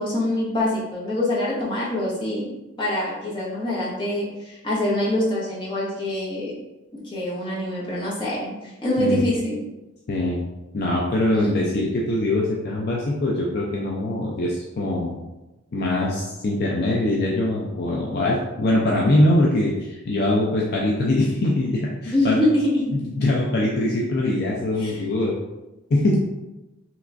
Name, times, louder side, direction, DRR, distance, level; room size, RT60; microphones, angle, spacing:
voice 1, 0.0-2.5 2.8-6.5 7.0-9.6 11.3-11.5 22.1-22.9 24.8-25.0, left 1 dB, 25° left, -7 dB, 0.9 m, -24 dB
voice 2, 10.1-10.4 10.7-15.2 15.7-22.4 22.9-25.3 25.9-26.3, left 1 dB, 50° left, -3 dB, 0.4 m, -22 dB
3.3 x 3.0 x 2.5 m, 1.0 s
head